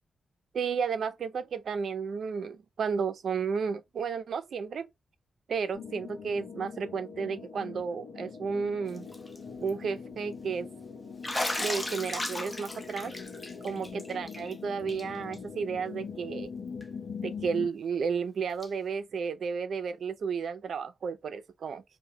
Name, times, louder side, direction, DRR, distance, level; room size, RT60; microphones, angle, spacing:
voice 1, 0.5-4.9 5.5-9.1 9.6-10.7 11.6-13.1 13.6-16.5 17.2-21.8, right 6 dB, 65° right, 0.4 m, -32 dB
sound 1, 5.7-17.7, left 5 dB, 85° left, 1.0 m, -42 dB
Bathtub (filling or washing), 9.0-9.4 9.7-9.8 11.2-14.5 14.9-15.0 15.3-15.4 16.8-16.9 18.6-18.7, left 2 dB, 15° left, 0.4 m, -35 dB
2.1 x 2.1 x 3.2 m
wide cardioid pair, 135°, 0 cm